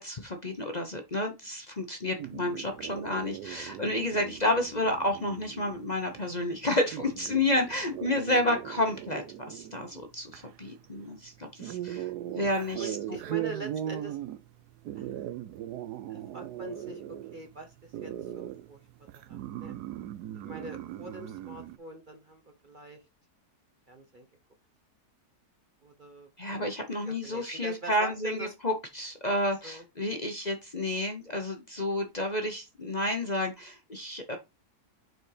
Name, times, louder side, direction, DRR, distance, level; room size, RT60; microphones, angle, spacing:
voice 1, 0.0-13.0 26.4-34.4, left 1 dB, 30° left, 4 dB, 1.0 m, -30 dB
sound 1, 2.2-21.8, right 12 dB, 85° right, 1.2 m, -40 dB
voice 2, 12.8-14.2 14.9-15.1 16.1-17.0 17.3-18.8 19.1-19.7 20.3-23.0 23.9-24.3 25.8-26.3 26.9-28.5 29.6-29.8 30.2-30.3, right 2 dB, 35° right, 4 dB, 1.0 m, -43 dB
6.5 x 4.4 x 4.9 m, 0.24 s
omnidirectional pair, 1.7 m